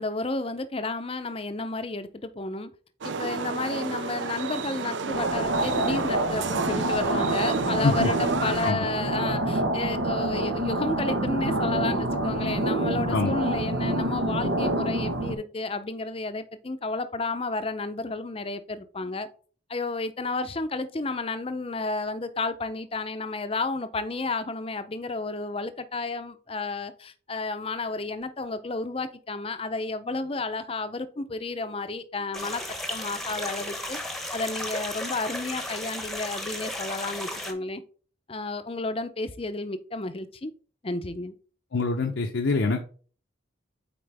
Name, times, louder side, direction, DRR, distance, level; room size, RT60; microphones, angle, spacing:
voice 1, 0.0-2.7 3.0-19.3 19.7-32.6 32.9-34.0 34.3-37.8 38.3-40.5 40.8-41.3, left 3 dB, 30° left, 0.6 m, -32 dB
sound 1, 3.0-8.7, right 5 dB, 65° right, 0.6 m, -32 dB
sound 2, 5.1-15.4, right 1 dB, 90° right, 1.2 m, -27 dB
sound 3, 32.3-37.5, left 1 dB, ahead, 0.9 m, -34 dB
voice 2, 41.7-42.8, left 3 dB, 70° left, 0.7 m, -24 dB
8.7 x 4.4 x 3.4 m
head